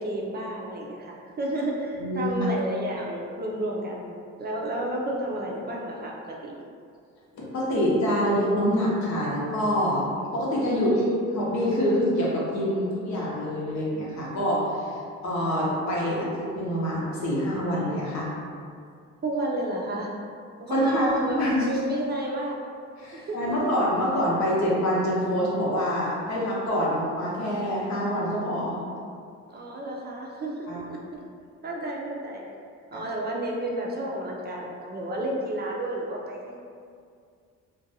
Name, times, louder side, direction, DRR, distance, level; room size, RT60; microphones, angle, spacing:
voice 1, 0.0-4.1 4.4-6.5 10.7-11.2 19.2-20.1 20.6-22.6 23.1-23.8 29.5-30.5 30.9-31.2 31.6-32.4 32.9-36.6, right 1 dB, 35° right, -2 dB, 0.4 m, -31 dB
voice 2, 1.9-2.5 7.3-10.1 10.3-10.9 11.3-15.0 15.2-18.3 20.7-21.7 23.0-28.8 30.7-30.8 32.9-33.0, equal, 65° left, -5 dB, 0.8 m, -26 dB
2.5 x 2.2 x 2.6 m, 2.2 s
cardioid pair, 90°, 30 cm